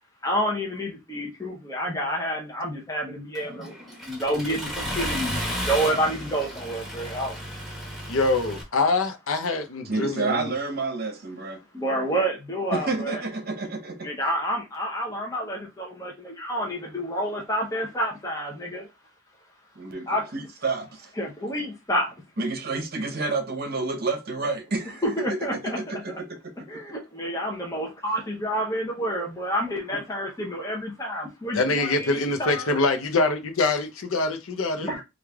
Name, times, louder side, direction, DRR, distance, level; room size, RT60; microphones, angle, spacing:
voice 1, 0.2-7.4 11.7-13.2 14.0-18.9 20.1-20.2 21.2-22.1 25.0-26.2 26.7-32.8 34.9-35.0, equal, 15° left, 0.7 m, -29 dB
Accelerating revving vroom, 3.4-8.6, equal, ahead, 1.2 m, -33 dB
voice 2, 8.1-10.5 31.5-34.9, left 3 dB, 80° left, 0.7 m, -24 dB
voice 3, 9.8-11.6 12.7-14.1 19.8-21.1 22.4-25.0 25.3-26.4 26.7-26.8 34.8-35.0, right 3 dB, 50° right, 0.8 m, -30 dB
3.2 x 2.5 x 3.4 m
head